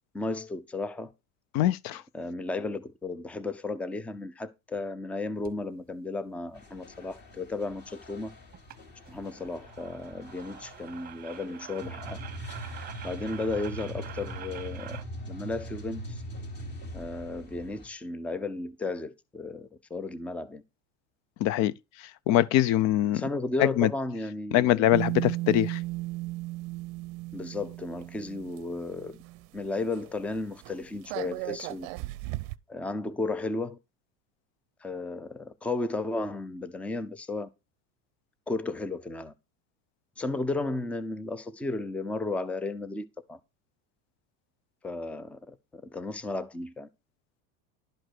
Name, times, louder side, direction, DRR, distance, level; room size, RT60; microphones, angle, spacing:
voice 1, 0.1-1.1 2.1-8.3 9.1-12.2 13.0-16.2 16.9-20.6 23.1-25.0 27.3-29.2 29.5-31.9 32.7-33.8 34.8-37.5 38.5-39.3 40.2-43.4 44.8-46.9, left 2 dB, 5° left, 0.5 m, -34 dB
voice 2, 1.5-2.0 21.4-21.7 22.3-23.2 23.6-23.9 24.5-25.8, left 13 dB, 45° left, 0.7 m, -23 dB
sound 1, 5.4-5.6 8.1-8.2 8.5-8.8 9.1-15.0, right 9 dB, 25° right, 0.9 m, -46 dB
sound 2, 6.5-17.9, equal, 30° left, 2.7 m, -42 dB
sound 3, 24.9-29.6 29.9-30.1 30.4-32.6, right 20 dB, 55° right, 0.6 m, -36 dB
11.5 x 5.2 x 6.1 m
supercardioid pair, 150°, 36 cm